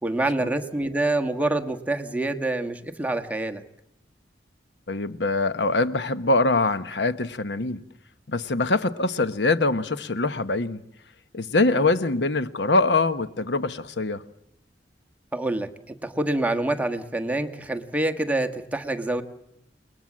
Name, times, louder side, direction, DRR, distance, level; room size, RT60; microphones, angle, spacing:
voice 1, 0.0-3.6 11.7-11.8 15.3-19.2, right 2 dB, 10° right, 1.4 m, -26 dB
voice 2, 4.9-7.8 8.3-10.8 11.3-14.2, left 3 dB, 70° left, 1.1 m, -23 dB
29.5 x 20.5 x 7.4 m
head